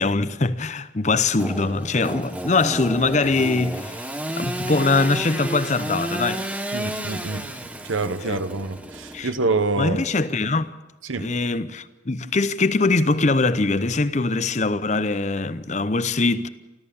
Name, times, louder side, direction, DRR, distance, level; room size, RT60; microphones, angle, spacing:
voice 1, 0.0-6.5 8.3-8.5 9.1-9.3 9.8-10.7 11.2-16.5, left 3 dB, 35° left, 0.7 m, -22 dB
Engine / Sawing, 1.4-9.6, right 1 dB, 5° right, 0.9 m, -32 dB
voice 2, 6.7-7.4 7.8-10.0 11.0-11.3, right 3 dB, 85° right, 1.2 m, -26 dB
28.0 x 13.0 x 7.0 m
head